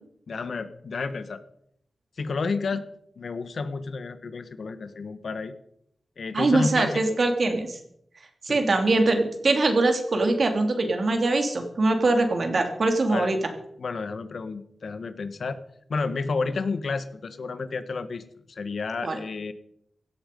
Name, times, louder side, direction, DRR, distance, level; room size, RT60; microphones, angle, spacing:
voice 1, 0.3-1.4 2.2-2.8 3.2-5.5 6.2-7.2 8.5-8.7 13.1-13.3 13.8-15.6 15.9-19.5, left 4 dB, 70° left, 11 dB, 1.4 m, -31 dB
voice 2, 6.3-7.8 8.4-13.4 19.0-19.2, right 2 dB, 55° right, 5 dB, 3.0 m, -22 dB
17.0 x 13.0 x 5.4 m, 0.72 s
wide cardioid pair, 95°, 0 cm